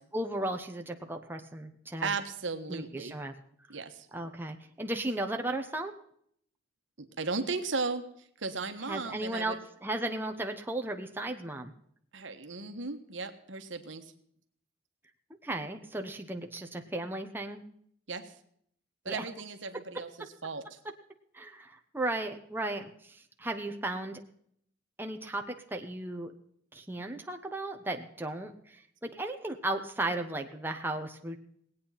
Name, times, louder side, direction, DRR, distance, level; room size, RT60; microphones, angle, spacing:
voice 1, 0.1-2.1 2.7-3.3 4.1-5.9 8.9-11.7 15.4-17.6 19.1-19.2 21.3-24.2 25.0-26.3 26.7-31.4, right 1 dB, 10° right, 4 dB, 1.0 m, -35 dB
voice 2, 2.0-3.2 3.7-4.1 7.0-8.0 8.4-9.6 12.1-14.1 18.1-18.3 19.0-20.1 20.4-20.8, right 4 dB, 70° right, 7 dB, 1.4 m, -36 dB
19.5 x 8.8 x 5.7 m, 0.66 s
head